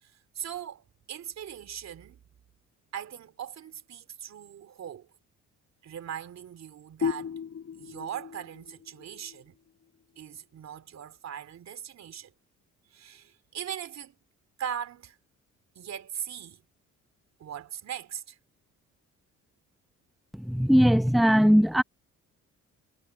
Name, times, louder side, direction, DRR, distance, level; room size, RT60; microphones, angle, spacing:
voice 1, 0.0-2.2 2.9-5.1 5.8-7.4 7.8-9.6 10.2-12.3 12.9-14.2 14.6-15.2 15.7-16.6 17.4-18.4, right 9 dB, 60° right, 3.2 m, -40 dB
sound 1, 7.0-10.4, left 7 dB, 50° left, 7.2 m, -36 dB
voice 2, 20.4-21.8, equal, ahead, 1.1 m, -20 dB
cardioid pair, 90°, 30 cm